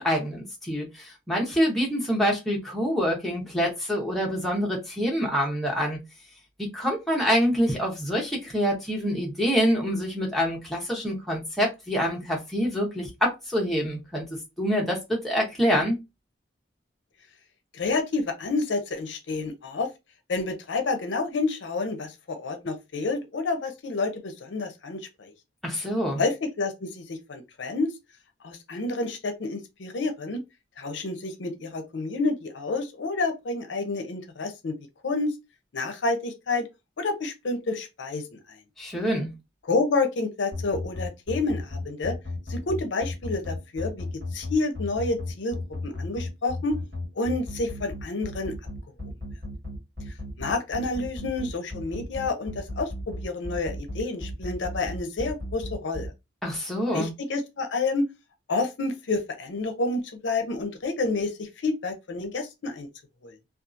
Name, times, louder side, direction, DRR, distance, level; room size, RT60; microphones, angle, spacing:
voice 1, 0.0-6.0 6.7-14.3 14.6-16.0 25.6-26.2 38.8-39.3 56.4-57.1, equal, ahead, 0.8 m, -26 dB
voice 2, 17.7-19.9 20.3-25.3 26.2-27.9 28.4-30.4 30.8-34.7 35.0-35.3 35.7-36.7 37.0-38.4 39.6-42.2 42.5-44.1 44.3-45.6 45.8-46.8 47.2-48.5 50.4-56.1 56.9-58.1 58.5-62.9 63.2-63.3, left 3 dB, 70° left, 0.5 m, -29 dB
sound 1, 40.5-56.1, left 2 dB, 50° right, 1.5 m, -34 dB
2.6 x 2.3 x 2.4 m
head